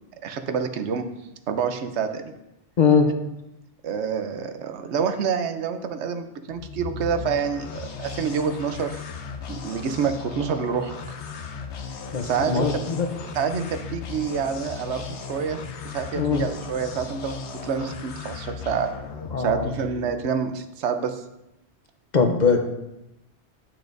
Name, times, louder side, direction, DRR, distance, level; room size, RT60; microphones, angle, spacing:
voice 1, 0.2-1.1 1.5-2.3 3.8-9.0 9.5-11.0 12.2-12.7 13.3-17.4 17.6-18.9 19.4-21.2, right 6 dB, 90° right, 8 dB, 1.0 m, -27 dB
voice 2, 2.8-3.1 12.1-13.1 16.2-16.4 19.3-19.7 22.1-22.7, left 5 dB, 45° left, 4 dB, 0.8 m, -21 dB
sound 1, 6.5-20.2, left 5 dB, 85° left, 1.0 m, -36 dB
10.5 x 6.0 x 2.6 m, 0.90 s
omnidirectional pair, 1.1 m